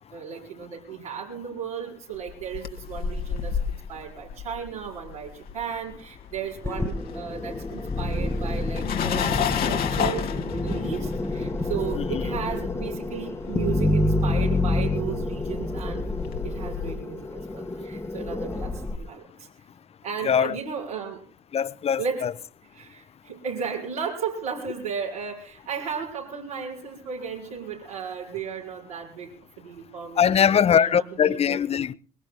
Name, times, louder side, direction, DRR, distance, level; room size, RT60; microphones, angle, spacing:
voice 1, 0.1-16.1 16.4-19.5 20.0-21.3 22.0-22.3 22.7-31.6, right 7 dB, 80° right, 5.1 m, -35 dB
sound 1, 2.3-5.9 6.2-16.9, left 7 dB, 55° left, 1.8 m, -32 dB
sound 2, 6.6-19.0, left 2 dB, 15° left, 1.5 m, -28 dB
voice 2, 20.2-20.6 21.5-22.3 30.2-31.9, left 8 dB, 35° left, 0.7 m, -22 dB
23.0 x 22.5 x 2.2 m
figure-of-eight pair, 50°, 19 cm